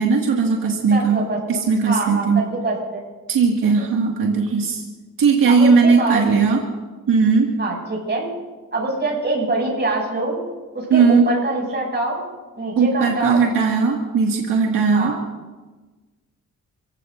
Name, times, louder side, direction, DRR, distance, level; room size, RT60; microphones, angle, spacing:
voice 1, 0.0-1.2 1.5-2.4 3.3-4.8 5.2-6.6 7.1-7.5 10.9-11.3 12.8-15.2, right 5 dB, 85° right, -1 dB, 2.2 m, -17 dB
voice 2, 0.9-3.0 5.5-6.2 7.6-8.3 8.7-10.4 10.7-12.2 12.6-13.4 14.9-15.2, right 2 dB, 30° right, -2 dB, 7.1 m, -24 dB
29.5 x 16.5 x 2.7 m, 1.3 s
cardioid pair, 105°, 33 cm